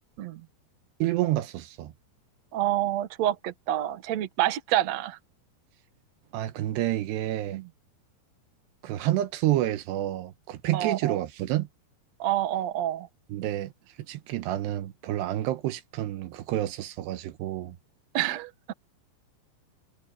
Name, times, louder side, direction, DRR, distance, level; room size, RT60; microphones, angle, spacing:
voice 1, 1.0-1.9 6.3-7.6 8.8-11.7 13.3-13.7 14.1-17.8, right 14 dB, 80° right, 3.0 m, -29 dB
voice 2, 2.5-5.2 7.5-7.6 10.7-11.1 12.2-13.1 18.1-18.5, right 13 dB, 60° right, 1.8 m, -27 dB
omnidirectional pair, 5.1 m